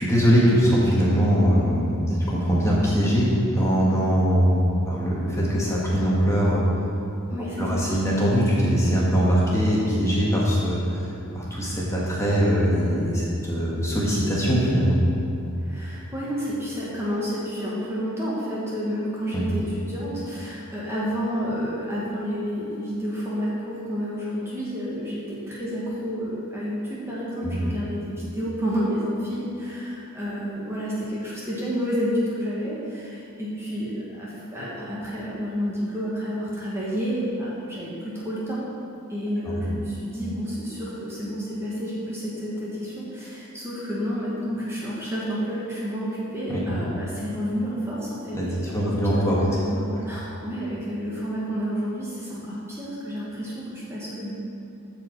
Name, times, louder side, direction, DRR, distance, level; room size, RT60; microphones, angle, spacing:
voice 1, 0.0-6.6 7.4-11.0 11.3-15.0 19.3-19.4 27.3-27.5 39.4-39.6 46.5-46.7 48.3-49.4, equal, 15° left, -6 dB, 1.5 m, -22 dB
voice 2, 7.3-7.9 15.6-38.6 39.1-54.4, equal, 10° right, -7 dB, 1.4 m, -30 dB
14.0 x 4.8 x 4.6 m, 2.8 s
head